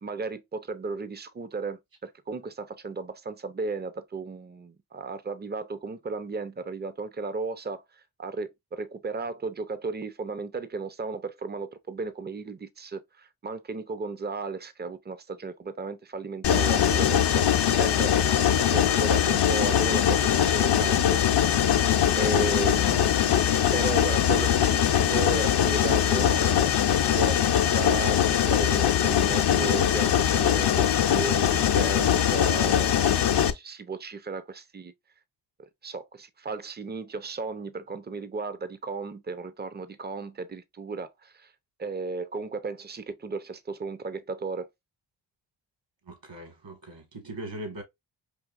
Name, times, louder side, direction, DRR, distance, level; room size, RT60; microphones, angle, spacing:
voice 1, 0.0-21.6 22.1-23.3 23.7-26.7 27.1-33.0 33.3-34.9 35.6-41.5 41.8-44.7, right 4 dB, 20° right, 0.6 m, -35 dB
Mechanisms, 16.4-33.5, left 9 dB, 55° left, 0.7 m, -22 dB
voice 2, 46.1-47.8, right 1 dB, 65° right, 1.9 m, -40 dB
4.7 x 2.8 x 2.5 m
cardioid pair, 55°, 48 cm